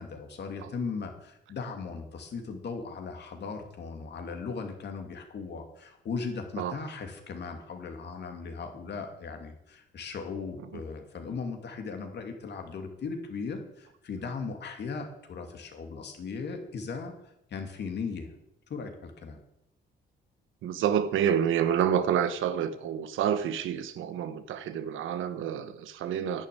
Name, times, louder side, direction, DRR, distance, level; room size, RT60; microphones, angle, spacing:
voice 1, 0.0-17.1 17.5-18.3 18.7-19.4, left 5 dB, 60° left, 2.7 m, -37 dB
voice 2, 20.6-26.5, right 9 dB, 85° right, 1.1 m, -28 dB
10.5 x 7.1 x 9.5 m
cardioid pair, 90°, 20 cm